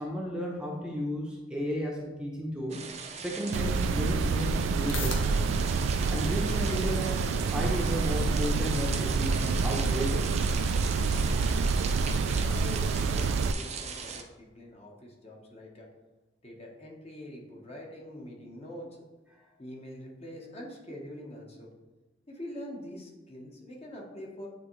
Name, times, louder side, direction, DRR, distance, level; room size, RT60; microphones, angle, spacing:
voice 1, 0.0-2.8 3.2-5.4 6.1-10.3 19.3-19.4, equal, 5° right, -3 dB, 0.7 m, -34 dB
sound 1, 2.7-14.2, right 5 dB, 35° right, 0.5 m, -39 dB
sound 2, 3.5-13.5, right 4 dB, 85° right, 0.3 m, -27 dB
sound 3, 4.3-20.4, left 4 dB, 90° left, 1.0 m, -51 dB
voice 2, 12.5-15.9 16.4-19.1 19.6-21.7 22.3-24.5, equal, 35° left, -1 dB, 1.0 m, -44 dB
8.9 x 3.6 x 3.1 m, 1.1 s
head